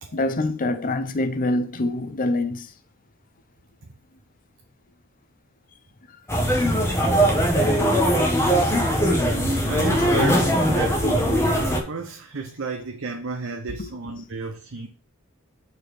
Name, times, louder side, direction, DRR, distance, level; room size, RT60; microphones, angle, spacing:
voice 1, 0.1-2.7 6.4-6.6 8.0-8.1 13.8-13.9, left 2 dB, 40° left, 0.6 m, -25 dB
sound 1, 6.3-11.8, equal, 10° left, 1.5 m, -20 dB
voice 2, 9.3-14.9, right 4 dB, 60° right, 0.8 m, -32 dB
5.4 x 4.4 x 6.1 m
head